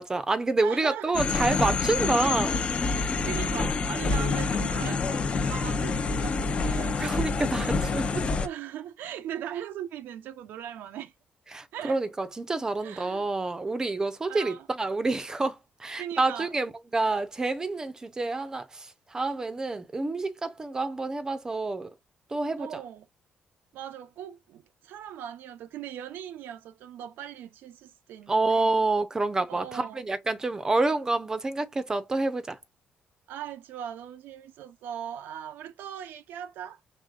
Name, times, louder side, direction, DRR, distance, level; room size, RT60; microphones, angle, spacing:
voice 1, 0.0-2.6 7.0-8.2 11.5-21.9 22.3-22.8 28.3-32.6, right 3 dB, 20° right, 0.6 m, -28 dB
voice 2, 0.6-1.2 3.2-7.0 8.4-11.1 11.7-12.0 12.8-13.3 14.3-14.7 16.0-16.5 22.6-23.1 23.7-28.8 29.5-30.0 33.3-36.8, right 10 dB, 90° right, 0.5 m, -39 dB
sound 1, 1.1-8.5, left 4 dB, 35° left, 0.6 m, -27 dB
5.0 x 3.5 x 2.4 m
cardioid pair, 135°, 3 cm